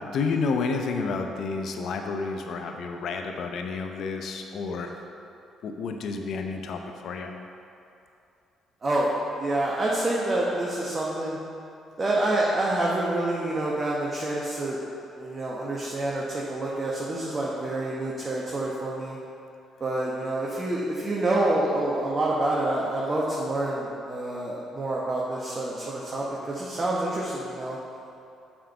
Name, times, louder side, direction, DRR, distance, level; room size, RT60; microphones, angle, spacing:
voice 1, 0.0-4.9 5.6-7.3, left 4 dB, 65° left, 4 dB, 0.7 m, -30 dB
voice 2, 8.8-9.1 9.4-11.4 12.0-14.8 15.2-19.2 19.8-27.8, right 1 dB, 35° right, -5 dB, 1.2 m, -27 dB
7.6 x 4.5 x 5.7 m, 2.7 s
hypercardioid pair, 50°, 0 cm